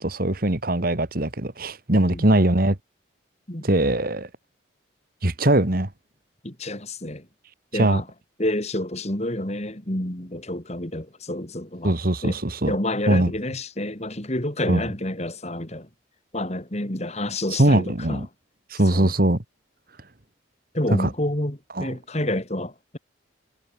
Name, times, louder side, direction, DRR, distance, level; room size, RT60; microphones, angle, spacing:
voice 1, 0.0-2.8 3.6-4.3 5.2-5.9 7.7-8.0 11.8-12.7 13.1-13.3 14.7-14.8 17.6-18.3 18.7-19.4 20.9-21.1 21.8-22.0, right 1 dB, 45° right, 1.8 m, -21 dB
voice 2, 6.4-7.2 7.7-8.0 8.4-11.9 12.2-12.4 12.7-15.9 16.3-18.2 18.9-19.1 20.7-23.0, left 1 dB, 35° left, 2.9 m, -29 dB
head